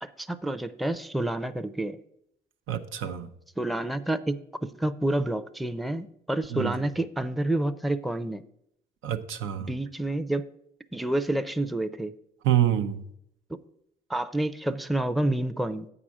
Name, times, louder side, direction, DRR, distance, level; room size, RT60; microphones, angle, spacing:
voice 1, 0.0-2.0 3.6-8.4 9.7-10.4 10.9-12.1 14.1-15.9, right 1 dB, ahead, 0.5 m, -29 dB
voice 2, 2.7-3.3 6.5-6.8 9.0-9.7 12.4-13.0, right 11 dB, 90° right, 0.7 m, -26 dB
8.4 x 4.9 x 7.3 m
cardioid pair, 90°, 20 cm